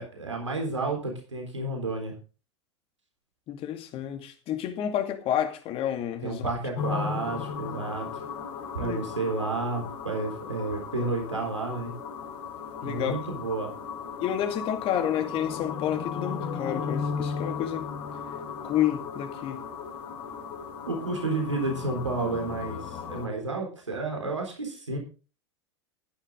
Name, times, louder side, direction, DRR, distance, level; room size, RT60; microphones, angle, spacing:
voice 1, 0.0-2.1 6.2-8.2 8.7-11.9 12.8-13.7 20.9-25.0, right 3 dB, 85° right, 3.8 m, -31 dB
voice 2, 3.5-6.5 8.8-9.1 12.8-13.2 14.2-17.9 18.6-19.6, left 10 dB, 40° left, 2.3 m, -30 dB
sound 1, 6.8-23.3, left 6 dB, 55° left, 3.0 m, -36 dB
14.0 x 10.0 x 3.8 m
figure-of-eight pair, 85°, 15 cm